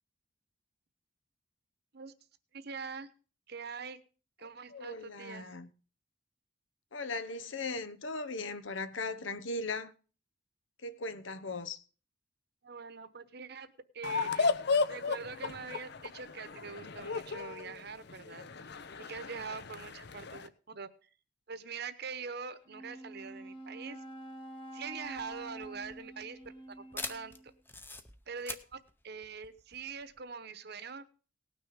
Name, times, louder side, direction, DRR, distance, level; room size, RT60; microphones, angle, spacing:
voice 1, 2.5-3.1 3.5-4.0 4.4-5.5 12.6-14.5 14.9-18.5 19.0-21.1 21.5-24.0 24.7-26.4 26.7-27.3 28.3-28.8 29.0-31.0, right 5 dB, 60° right, 1.0 m, -43 dB
voice 2, 4.7-5.7 6.9-9.9 10.8-11.8, left 3 dB, 90° left, 1.1 m, -38 dB
sound 1, 14.0-20.5, left 4 dB, 60° left, 0.8 m, -34 dB
Wind instrument woodwind instrument, 22.6-27.6, right 1 dB, 25° left, 2.3 m, -48 dB
sound 2, 25.0-30.2, left 3 dB, 10° left, 0.8 m, -45 dB
18.5 x 6.3 x 5.1 m
head